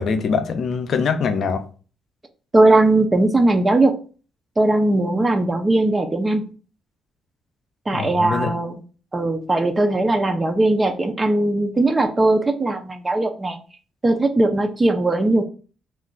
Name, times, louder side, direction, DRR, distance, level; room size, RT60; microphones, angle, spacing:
voice 1, 0.0-1.7 7.9-8.5, left 5 dB, 60° left, 0.4 m, -23 dB
voice 2, 2.5-4.0 4.6-6.4 7.9-8.7 9.1-13.6 14.0-15.4, right 2 dB, 20° right, 0.4 m, -19 dB
2.4 x 2.2 x 3.8 m
cardioid pair, 90°, 0 cm